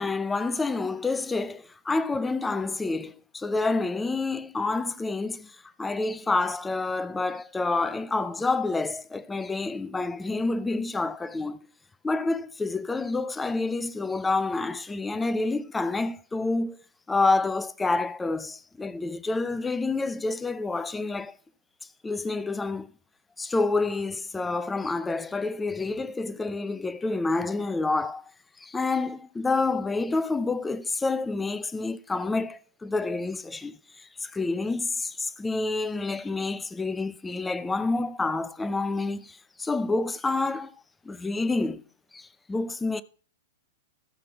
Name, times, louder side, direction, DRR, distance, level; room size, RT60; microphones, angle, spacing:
voice 1, 0.0-11.7 12.0-16.8 17.1-21.4 22.0-22.9 23.4-28.2 28.6-40.7 41.0-41.8 42.1-43.0, left 3 dB, 10° left, 0.6 m, -28 dB
14.0 x 5.9 x 4.7 m
hypercardioid pair, 110°, 0 cm